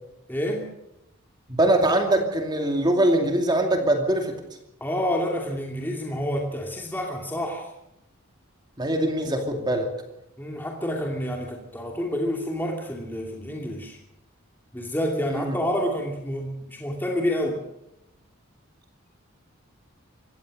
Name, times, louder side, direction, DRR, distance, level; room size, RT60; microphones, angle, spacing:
voice 1, 0.3-0.7 4.8-7.7 10.4-14.0 14.7-17.6, equal, 10° left, 0 dB, 2.5 m, -28 dB
voice 2, 1.5-4.4 8.8-9.9 15.3-15.6, right 1 dB, 20° right, 4 dB, 2.5 m, -22 dB
24.0 x 17.5 x 6.5 m, 0.84 s
head